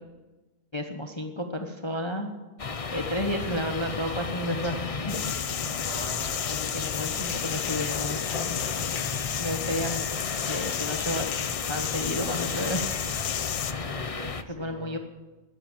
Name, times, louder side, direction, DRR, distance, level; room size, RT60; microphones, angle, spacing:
voice 1, 0.7-2.3 2.9-4.8 5.1-5.2 6.5-8.6 9.4-11.3 11.5-12.8 14.5-15.0, left 1 dB, 20° left, 5 dB, 1.0 m, -32 dB
sound 1, 2.6-14.4, left 4 dB, 40° left, 0.5 m, -33 dB
sound 2, 5.1-13.7, left 10 dB, 65° left, 1.0 m, -33 dB
voice 2, 5.8-7.3 13.8-15.0, right 3 dB, 45° right, 5 dB, 1.6 m, -44 dB
13.0 x 11.0 x 8.9 m, 1.2 s
omnidirectional pair, 1.7 m